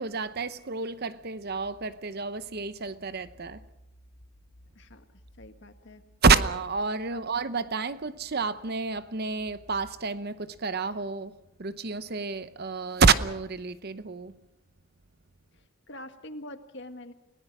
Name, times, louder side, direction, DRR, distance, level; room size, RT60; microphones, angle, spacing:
voice 1, 0.0-3.6 6.2-14.4, right 4 dB, 45° right, 0.8 m, -28 dB
sound 1, 1.3-10.1, equal, 90° left, 4.3 m, -58 dB
voice 2, 5.4-6.0 7.1-7.2 15.5-17.1, left 1 dB, 55° left, 1.7 m, -44 dB
29.5 x 18.0 x 6.1 m
head